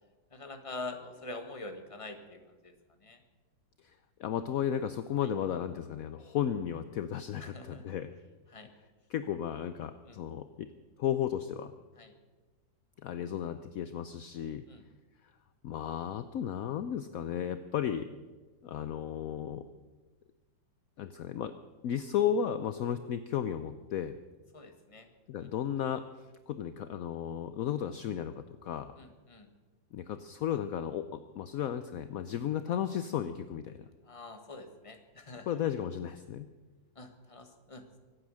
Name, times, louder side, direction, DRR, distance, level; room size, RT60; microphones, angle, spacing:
voice 1, 0.3-2.7 3.0-3.2 7.4-7.8 8.5-8.7 10.0-10.2 12.0-12.1 14.7-14.8 24.5-25.1 29.0-29.5 34.0-35.6 36.9-38.0, left 2 dB, 20° left, 6 dB, 1.4 m, -45 dB
voice 2, 4.2-8.1 9.1-10.7 11.0-11.7 13.0-14.7 15.6-18.1 18.6-19.6 21.0-21.5 21.8-24.2 25.3-28.9 29.9-33.9 35.5-36.5, left 9 dB, 70° left, 11 dB, 0.8 m, -34 dB
24.5 x 9.0 x 6.4 m, 1.3 s
omnidirectional pair, 2.1 m